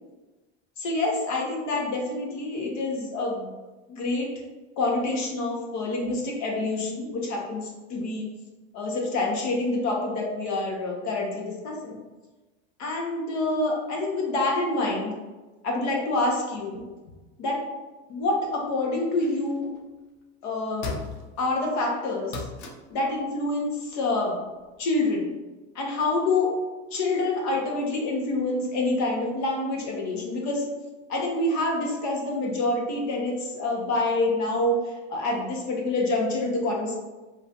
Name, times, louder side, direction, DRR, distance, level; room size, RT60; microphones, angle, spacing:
voice 1, 0.8-3.5 3.9-4.4 4.8-8.3 8.7-12.0 12.8-15.1 15.6-16.8 17.4-17.6 18.1-19.7 20.4-20.9 21.4-22.4 22.9-24.4 24.8-25.3 25.7-26.5 26.9-30.6 31.1-36.9, left 2 dB, 65° left, 0 dB, 1.3 m, -27 dB
sound 1, 19.1-19.8 20.8-21.5 22.3-23.0 24.8-24.9, left 4 dB, 85° left, 0.8 m, -36 dB
4.8 x 3.5 x 2.6 m, 1.2 s
supercardioid pair, 105°, 31 cm